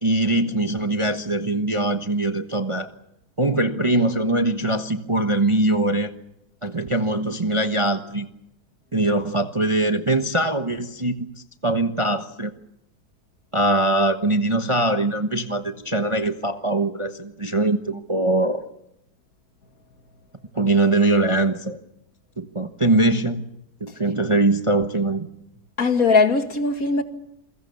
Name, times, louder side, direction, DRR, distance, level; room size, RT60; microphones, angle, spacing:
voice 1, 0.0-2.9 3.4-6.1 6.6-8.3 8.9-11.3 11.6-12.5 13.5-18.6 20.5-21.8 22.4-23.4 23.8-25.3, right 2 dB, 20° right, 1.1 m, -22 dB
voice 2, 25.8-27.0, left 4 dB, 50° left, 2.4 m, -19 dB
28.5 x 22.5 x 7.0 m
omnidirectional pair, 1.9 m